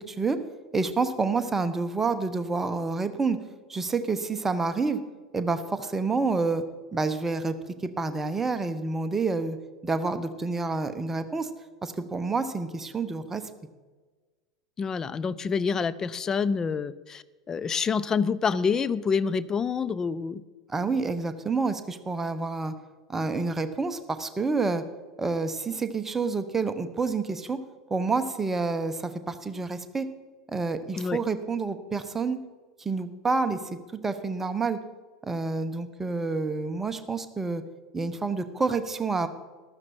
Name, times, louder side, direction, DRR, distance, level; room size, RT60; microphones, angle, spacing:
voice 1, 0.1-0.4 0.7-3.4 3.7-5.0 5.3-6.6 6.9-7.6 7.8-9.6 9.8-11.5 11.8-13.4 20.7-22.7 23.1-24.8 25.2-27.6 27.9-30.1 30.5-32.4 32.8-33.6 34.0-34.8 35.2-37.6 37.9-39.3, right 4 dB, 15° right, 10 dB, 1.0 m, -28 dB
voice 2, 14.8-20.4 31.0-31.2, left 5 dB, 20° left, 16 dB, 0.5 m, -27 dB
14.5 x 12.5 x 4.4 m, 1.4 s
figure-of-eight pair, 80°, 2 cm